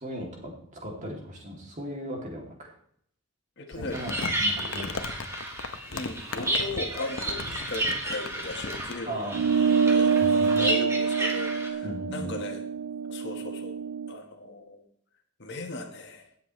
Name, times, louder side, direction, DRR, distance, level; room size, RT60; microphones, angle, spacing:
voice 1, 0.0-2.7 3.7-5.1 9.1-9.6 10.2-10.7 11.8-12.3, equal, 35° right, -1 dB, 2.9 m, -37 dB
voice 2, 3.6-4.0 5.9-9.2 9.6-12.7 13.1-13.8 14.1-14.8 15.4-16.3, left 2 dB, 55° left, 4 dB, 1.6 m, -37 dB
Crumpling crinkling, 3.7-9.0, left 4 dB, 85° left, 0.9 m, -37 dB
sound 1, 3.9-11.7, right 1 dB, 15° right, 1.8 m, -32 dB
sound 2, 9.3-14.1, right 6 dB, 80° right, 0.4 m, -26 dB
17.5 x 7.8 x 3.3 m, 0.65 s
head